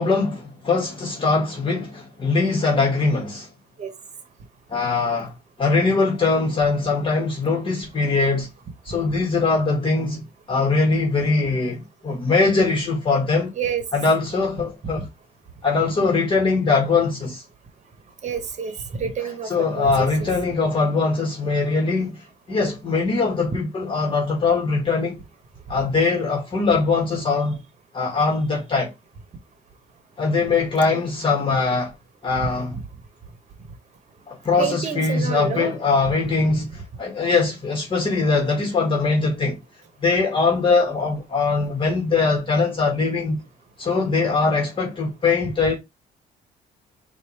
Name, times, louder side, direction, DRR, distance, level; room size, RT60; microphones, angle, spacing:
voice 1, 0.0-3.5 4.7-5.3 5.6-8.5 8.9-10.2 10.5-13.5 13.9-15.1 15.6-17.4 19.4-25.2 25.7-27.6 27.9-28.9 30.2-31.9 32.2-32.8 34.3-39.6 40.0-43.4 43.8-45.8, left 4 dB, 30° left, 1.8 m, -21 dB
voice 2, 13.5-13.9 15.0-15.1 18.2-20.3 32.4-32.5 34.6-35.8, right 6 dB, 45° right, 1.1 m, -28 dB
4.5 x 2.6 x 3.2 m
cardioid pair, 95°, 16 cm